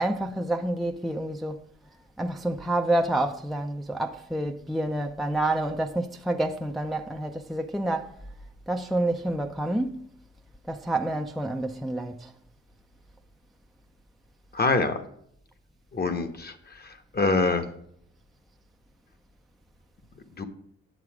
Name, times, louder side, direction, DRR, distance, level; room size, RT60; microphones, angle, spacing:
voice 1, 0.0-1.6 2.2-8.1 8.7-10.1 10.7-12.3, right 1 dB, ahead, 0.6 m, -28 dB
voice 2, 14.5-15.0 15.9-16.5 16.8-17.6 20.4-20.5, left 3 dB, 30° left, 1.2 m, -25 dB
9.4 x 7.0 x 4.8 m
cardioid pair, 90°, 30 cm